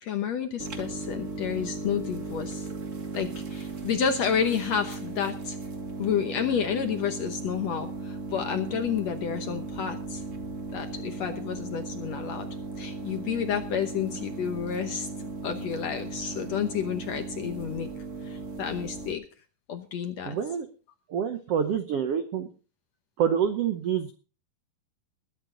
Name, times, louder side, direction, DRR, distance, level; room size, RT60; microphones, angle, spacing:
voice 1, 0.0-2.7 3.1-5.6 6.0-10.2 10.7-12.5 12.8-17.9 18.2-19.2 19.7-20.4, left 8 dB, 65° left, 7 dB, 1.8 m, -30 dB
sound 1, 0.6-19.1, right 3 dB, 50° right, 0.9 m, -37 dB
voice 2, 20.2-20.7 21.1-22.5 23.2-24.1, right 8 dB, 80° right, 8 dB, 1.3 m, -27 dB
21.0 x 9.8 x 3.9 m, 0.36 s
omnidirectional pair, 4.1 m